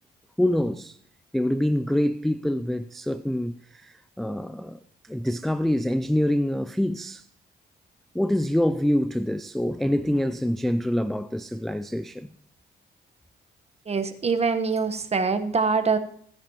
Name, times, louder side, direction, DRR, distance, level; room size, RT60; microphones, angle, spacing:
voice 1, 0.4-1.0 1.3-4.8 5.0-7.2 8.1-12.3, left 1 dB, ahead, 0.4 m, -25 dB
voice 2, 13.9-16.0, right 4 dB, 30° right, 1.2 m, -24 dB
16.0 x 10.5 x 3.0 m
cardioid pair, 90°, 20 cm